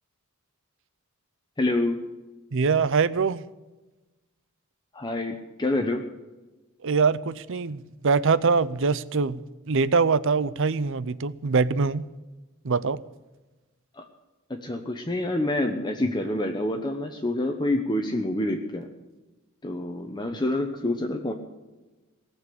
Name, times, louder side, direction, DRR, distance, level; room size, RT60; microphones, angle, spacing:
voice 1, 1.6-2.0 4.9-6.0 14.0-14.1 14.5-18.9 19.6-21.3, left 1 dB, 20° left, 3 dB, 1.0 m, -27 dB
voice 2, 2.5-3.4 6.8-12.0 12.6-13.0, right 4 dB, 65° right, 17 dB, 0.7 m, -23 dB
18.5 x 7.3 x 9.9 m, 1.1 s
head